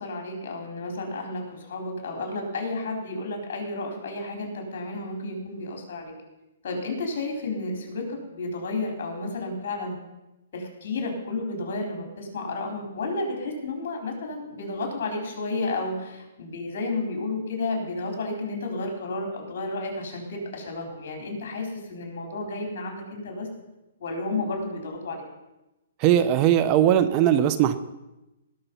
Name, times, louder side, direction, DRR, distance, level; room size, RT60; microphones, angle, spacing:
voice 1, 0.0-6.1 6.6-10.0 10.5-23.5 24.0-25.2, left 2 dB, 55° left, 2 dB, 4.3 m, -32 dB
voice 2, 26.0-27.8, right 11 dB, 30° right, 12 dB, 0.6 m, -19 dB
19.0 x 6.7 x 5.6 m, 0.99 s
hypercardioid pair, 150°, 0 cm